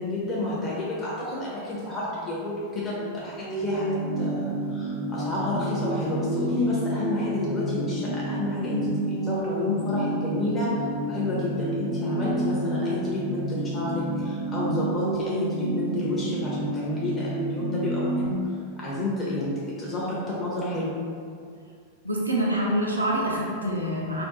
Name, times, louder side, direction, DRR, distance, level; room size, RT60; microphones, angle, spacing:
voice 1, 0.0-18.4 18.8-20.9, left 2 dB, 20° left, -7 dB, 0.6 m, -30 dB
sound 1, 3.4-18.3, right 2 dB, 45° left, 0.9 m, -29 dB
voice 2, 22.0-24.2, right 1 dB, 85° right, -3 dB, 0.5 m, -26 dB
2.5 x 2.1 x 3.8 m, 2.2 s
figure-of-eight pair, 90°, 0 cm